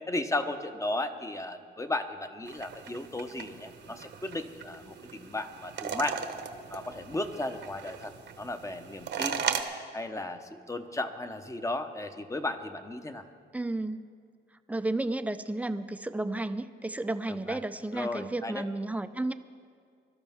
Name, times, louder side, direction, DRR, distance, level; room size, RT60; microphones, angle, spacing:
voice 1, 0.1-6.2 6.7-9.4 9.9-13.3 17.3-17.6 17.9-18.7, left 2 dB, 15° left, 8 dB, 0.9 m, -35 dB
sound 1, 2.5-9.6, right 7 dB, 60° right, 1.1 m, -38 dB
voice 2, 13.5-14.0 14.7-19.3, right 2 dB, 5° right, 11 dB, 0.5 m, -32 dB
21.0 x 12.0 x 3.6 m, 2.2 s
cardioid pair, 90°, 20 cm